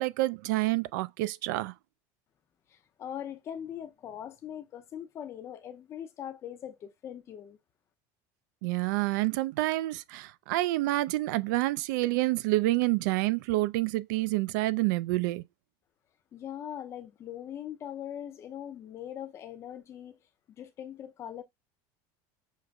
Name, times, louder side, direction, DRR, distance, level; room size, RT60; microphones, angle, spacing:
voice 1, 0.0-1.7 8.6-15.4, right 18 dB, 80° right, 0.4 m, -28 dB
voice 2, 2.7-7.6 16.3-20.2 20.6-21.4, left 10 dB, 25° left, 0.5 m, -41 dB
6.3 x 2.4 x 2.2 m
cardioid pair, 165°, 10 cm